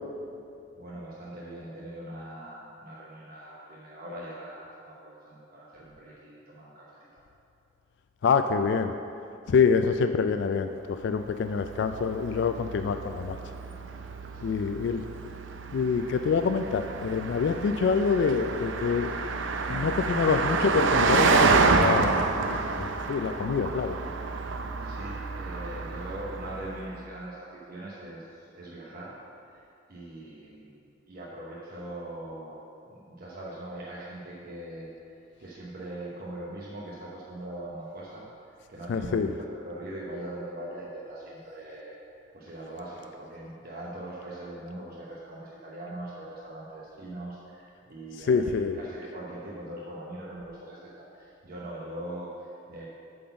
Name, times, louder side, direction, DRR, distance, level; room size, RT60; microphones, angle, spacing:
voice 1, 0.7-7.2 14.3-14.5 24.8-29.1 29.5-29.6 29.9-30.7 31.1-34.9 35.4-38.3 38.7-42.0 42.3-52.9, right 1 dB, 50° right, -6 dB, 0.9 m, -41 dB
voice 2, 8.2-8.9 9.5-13.4 14.4-15.0 15.7-19.1 19.7-23.9 38.9-39.3 48.3-48.8, left 5 dB, 65° left, 8 dB, 0.3 m, -26 dB
Car passing by, 11.1-26.9, right 4 dB, 75° right, 0.5 m, -28 dB
8.5 x 4.0 x 6.8 m, 2.6 s
head